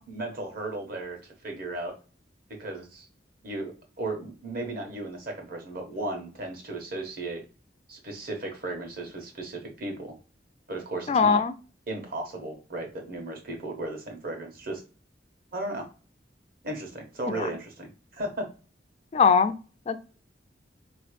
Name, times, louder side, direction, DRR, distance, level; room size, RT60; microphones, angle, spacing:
voice 1, 0.1-1.9 2.6-3.1 3.4-7.4 7.9-10.2 10.7-11.4 11.9-14.8 15.5-15.9 16.6-18.5, right 2 dB, 55° right, 1.3 m, -35 dB
voice 2, 11.1-11.5 17.3-17.5 19.1-19.6 19.9-20.0, left 5 dB, 35° left, 0.3 m, -21 dB
4.3 x 3.1 x 3.2 m
head